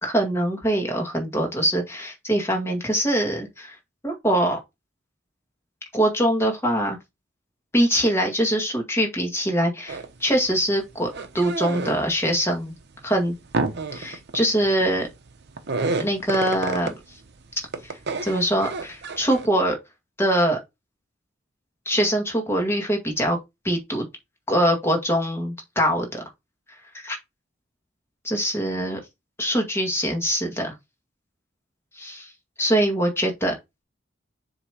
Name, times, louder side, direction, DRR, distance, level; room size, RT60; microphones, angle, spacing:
voice 1, 0.0-3.8 4.0-4.6 5.9-7.0 7.7-12.7 13.0-13.3 13.9-15.1 16.0-16.9 17.8-17.9 18.2-19.8 20.2-20.6 21.9-23.4 23.6-24.0 24.5-26.2 27.0-27.2 28.2-29.0 29.4-30.7 32.0-32.3 32.6-33.5, right 1 dB, 15° left, 1.9 m, -23 dB
sound 1, 9.9-10.2 10.5-12.2 12.6-17.3 17.6-19.5, right 3 dB, 60° right, 0.9 m, -29 dB
7.1 x 3.0 x 4.9 m
head